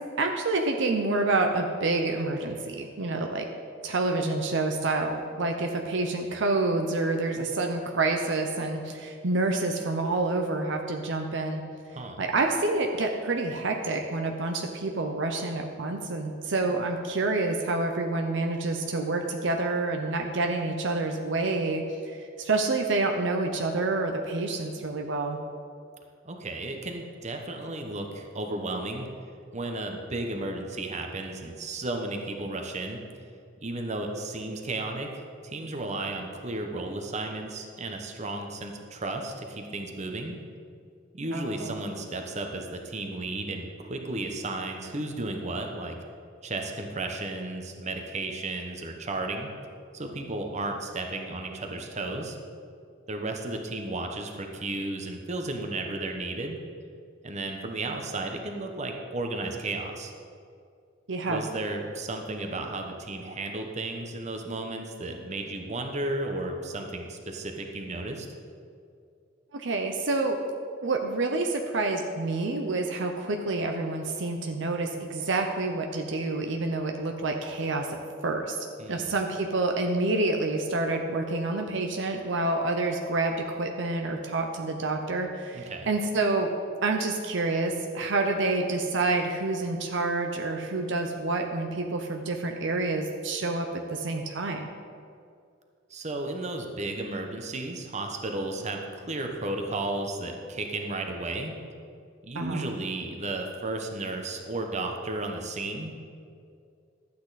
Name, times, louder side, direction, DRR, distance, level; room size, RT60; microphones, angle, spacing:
voice 1, 0.2-3.4 3.8-11.6 12.2-25.4 41.3-41.7 61.1-61.4 69.5-70.4 70.8-78.0 78.2-78.6 78.9-86.5 86.8-94.7 102.3-102.7, right 2 dB, 70° right, 3 dB, 0.7 m, -28 dB
voice 2, 26.2-29.1 29.5-33.0 33.6-40.4 41.1-46.0 46.4-49.5 49.9-52.4 53.1-56.6 57.2-60.1 61.2-68.3 78.8-79.2 85.5-85.9 95.9-101.6 102.2-105.9, right 2 dB, 35° right, 3 dB, 1.0 m, -34 dB
12.0 x 8.5 x 4.1 m, 2.3 s
head